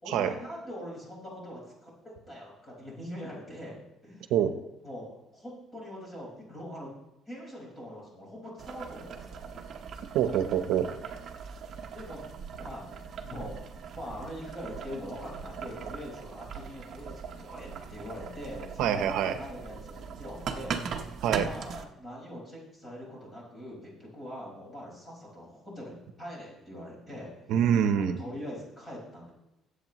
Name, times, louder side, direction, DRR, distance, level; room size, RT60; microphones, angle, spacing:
voice 1, 0.0-3.8 4.0-4.3 4.8-5.1 5.3-6.9 7.3-9.5 11.8-27.3 28.2-29.3, equal, 20° left, -3 dB, 5.2 m, -43 dB
Boiling, 8.6-21.8, right 6 dB, 45° right, 1.0 m, -40 dB
voice 2, 10.1-10.9 18.8-19.4 21.2-21.5 27.5-28.2, right 9 dB, 85° right, 8 dB, 0.9 m, -25 dB
22.5 x 8.2 x 3.1 m, 0.89 s
cardioid pair, 150°, 0 cm